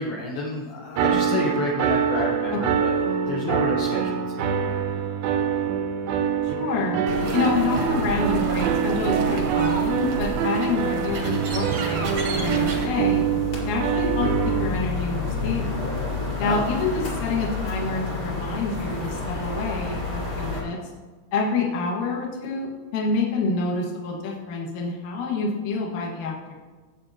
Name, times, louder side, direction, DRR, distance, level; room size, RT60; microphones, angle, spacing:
voice 1, 0.0-2.9 3.3-4.6 16.4-16.6, left 2 dB, 70° left, -3 dB, 2.7 m, -29 dB
sound 1, 1.0-14.7, right 7 dB, 80° right, 2.2 m, -25 dB
voice 2, 6.4-7.0 7.3-12.1 12.3-13.2 13.6-15.9 16.4-20.8 21.3-26.5, left 3 dB, 55° left, -2 dB, 2.5 m, -27 dB
sound 2, 7.1-12.9, right 3 dB, 65° right, 1.6 m, -29 dB
sound 3, 11.9-20.6, left 3 dB, 30° left, 3.5 m, -30 dB
17.0 x 7.7 x 3.0 m, 1.3 s
omnidirectional pair, 5.3 m